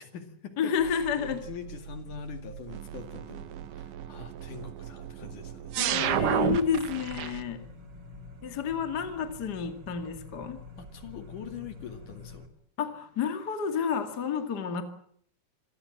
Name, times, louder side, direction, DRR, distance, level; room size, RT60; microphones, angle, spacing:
voice 1, 0.0-5.7 10.8-12.5, left 6 dB, 60° left, 7 dB, 3.5 m, -43 dB
voice 2, 0.6-1.4 5.8-7.7 8.4-10.6 12.8-14.8, left 7 dB, 35° left, 7 dB, 2.1 m, -30 dB
sound 1, 0.8-7.4, right 11 dB, 70° right, 2.5 m, -33 dB
sound 2, 6.1-12.5, left 3 dB, 35° right, 2.7 m, -47 dB
26.5 x 18.5 x 7.6 m, 0.67 s
omnidirectional pair, 4.2 m